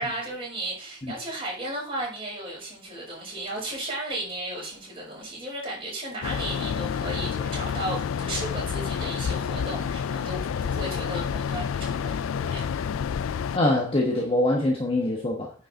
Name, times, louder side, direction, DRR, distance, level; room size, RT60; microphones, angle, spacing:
voice 1, 0.0-12.7, right 1 dB, 25° right, 5.1 m, -34 dB
sound 1, 6.2-13.6, left 7 dB, 75° left, 0.3 m, -29 dB
voice 2, 13.5-15.5, left 1 dB, 25° left, 1.3 m, -24 dB
9.6 x 5.7 x 3.8 m
head